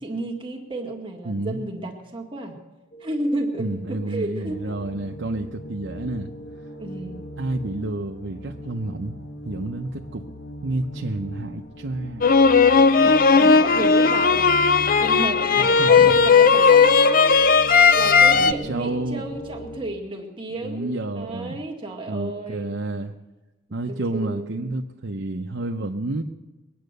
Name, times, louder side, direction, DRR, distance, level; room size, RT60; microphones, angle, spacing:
voice 1, 0.0-2.6 3.0-4.8 6.8-7.2 13.0-17.4 17.9-22.8 23.9-24.7, right 2 dB, 25° right, 2 dB, 1.8 m, -32 dB
voice 2, 1.2-1.6 3.6-6.3 7.4-9.2 9.5-10.2 10.6-12.3 15.5-16.3 18.3-19.2 20.6-21.6 22.1-23.2 23.7-26.2, right 2 dB, 75° right, 2 dB, 0.8 m, -30 dB
sound 1, 2.9-19.8, equal, 80° left, 1.9 m, -39 dB
sound 2, 12.2-18.5, left 5 dB, 45° left, 0.5 m, -16 dB
22.0 x 9.5 x 6.7 m, 1.1 s
head